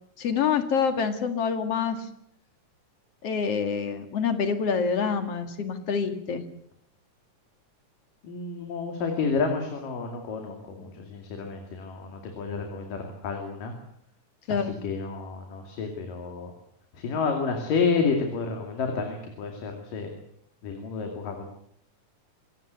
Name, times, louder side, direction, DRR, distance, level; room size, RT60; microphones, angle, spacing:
voice 1, 0.2-2.1 3.2-6.4 14.5-14.7, left 6 dB, 50° left, 8 dB, 2.8 m, -26 dB
voice 2, 8.2-13.7 14.5-16.5 17.0-20.1 20.6-21.4, left 5 dB, 80° left, 3 dB, 4.2 m, -30 dB
25.5 x 17.0 x 8.2 m, 0.71 s
omnidirectional pair, 3.8 m